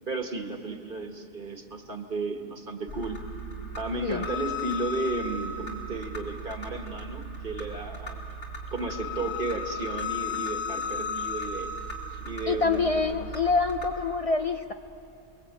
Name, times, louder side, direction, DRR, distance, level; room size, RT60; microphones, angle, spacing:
voice 1, 0.1-3.2 3.8-8.2 8.7-11.7 12.3-12.9, right 3 dB, 55° right, 4 dB, 1.8 m, -33 dB
sound 1, 2.9-13.8, left 3 dB, 75° left, 3.7 m, -36 dB
voice 2, 12.5-14.7, left 4 dB, 40° left, 6 dB, 0.7 m, -26 dB
29.5 x 22.5 x 8.8 m, 2.8 s
omnidirectional pair, 1.0 m